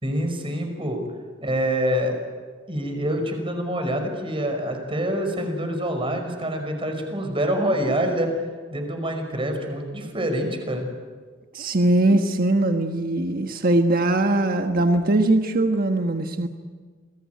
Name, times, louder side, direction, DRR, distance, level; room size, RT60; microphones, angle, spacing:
voice 1, 0.0-1.0 1.4-2.2 2.7-8.3 8.7-10.9, equal, 30° right, 5 dB, 5.5 m, -26 dB
voice 2, 11.5-16.5, right 2 dB, 50° right, 5 dB, 1.4 m, -21 dB
29.0 x 21.0 x 9.4 m, 1.5 s
head